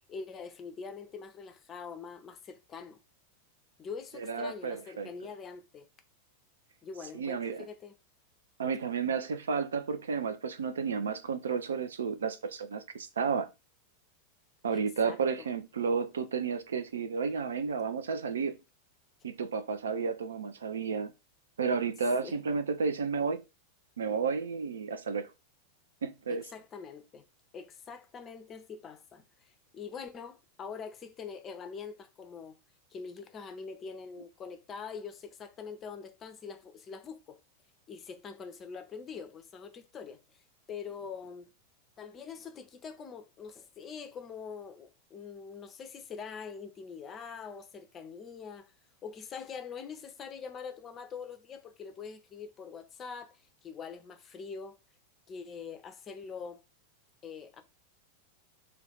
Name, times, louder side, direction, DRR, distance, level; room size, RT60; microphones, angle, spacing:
voice 1, 0.1-3.0 3.8-5.9 6.8-7.9 14.7-15.5 22.2-22.4 26.3-27.2 27.5-32.6 32.9-37.4 37.9-40.4 40.7-41.5 42.0-48.7 49.0-54.8 55.3-56.6 57.2-57.6, left 6 dB, 25° left, 0.5 m, -44 dB
voice 2, 4.2-5.1 7.1-7.6 8.6-13.5 14.6-18.6 19.2-21.1 21.6-23.4 24.0-25.3 26.0-26.4, right 5 dB, 65° right, 0.4 m, -32 dB
2.5 x 2.2 x 3.8 m
figure-of-eight pair, 90°, 0 cm